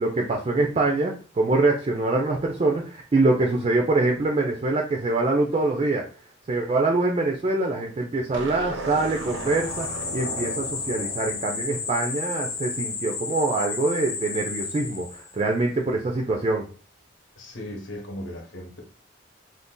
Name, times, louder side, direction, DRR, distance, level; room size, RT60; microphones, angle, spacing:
voice 1, 0.0-6.0 6.5-16.7, right 2 dB, 30° right, 0.3 m, -24 dB
sound 1, 8.3-12.7, right 2 dB, 75° right, 0.6 m, -37 dB
sound 2, 8.9-15.4, left 4 dB, 35° left, 0.6 m, -33 dB
voice 2, 17.4-18.8, left 1 dB, 70° left, 0.9 m, -37 dB
2.5 x 2.3 x 3.7 m
head